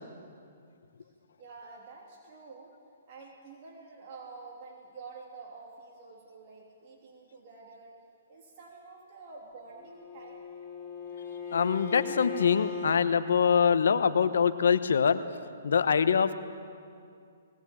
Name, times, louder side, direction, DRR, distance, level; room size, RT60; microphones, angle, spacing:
voice 1, 1.4-2.8 3.1-8.0 8.3-10.4, right 4 dB, 45° right, -2 dB, 3.3 m, -48 dB
Bowed string instrument, 9.8-13.0, left 6 dB, 20° left, 5.1 m, -38 dB
voice 2, 11.5-15.2 15.6-16.3, left 6 dB, 80° left, 11 dB, 1.1 m, -24 dB
19.5 x 18.5 x 8.7 m, 2.3 s
hypercardioid pair, 150°, 0 cm